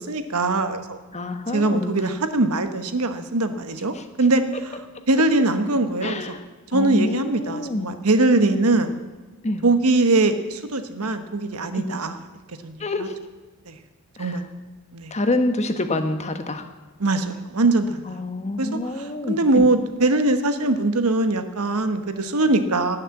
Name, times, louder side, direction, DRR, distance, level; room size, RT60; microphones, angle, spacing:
voice 1, 0.0-1.0 1.5-4.4 5.1-6.2 6.7-9.0 9.6-12.2 12.6-12.8 13.7-13.8 14.2-14.4 14.9-15.1 17.0-18.0 18.6-18.7 19.3-23.0, right 2 dB, 90° right, 9 dB, 1.2 m, -21 dB
voice 2, 1.1-2.0 3.9-4.1 6.0-6.4 6.7-7.9 9.4-9.6 11.7-11.9 12.8-13.2 14.2-14.4 15.1-16.7 18.0-19.7, left 2 dB, 30° left, 8 dB, 1.1 m, -27 dB
19.0 x 6.6 x 7.8 m, 1.3 s
head